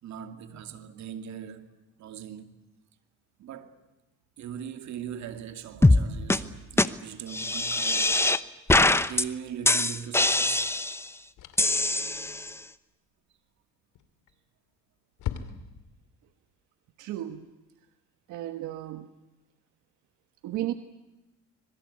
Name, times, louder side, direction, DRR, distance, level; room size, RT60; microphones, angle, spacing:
voice 1, 0.0-1.7 2.0-2.6 3.4-3.8 4.4-8.3 9.0-10.7, right 9 dB, 70° right, 2.5 m, -40 dB
sound 1, 5.8-6.0 6.3-6.4 6.8-6.9 7.3-8.4 8.7-9.2 9.7-11.1 11.6-12.5, left 2 dB, 10° left, 0.9 m, -22 dB
sound 2, 10.0-10.2 11.4-11.8 13.9-14.4 14.7-14.8 15.2-16.0, left 10 dB, 85° left, 2.6 m, -37 dB
voice 2, 17.0-17.5 18.3-19.1 20.4-20.7, right 13 dB, 90° right, 1.4 m, -34 dB
25.5 x 22.5 x 8.4 m
cardioid pair, 120°, 30 cm